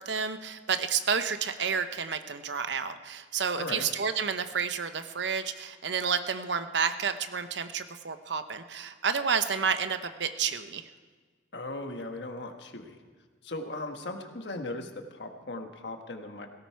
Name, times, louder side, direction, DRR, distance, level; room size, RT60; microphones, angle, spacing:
voice 1, 0.0-10.9, right 6 dB, 65° right, 10 dB, 0.9 m, -30 dB
voice 2, 3.6-3.9 11.5-13.0 13.4-16.5, left 2 dB, 65° left, 5 dB, 1.4 m, -38 dB
17.5 x 17.0 x 4.7 m, 1.6 s
head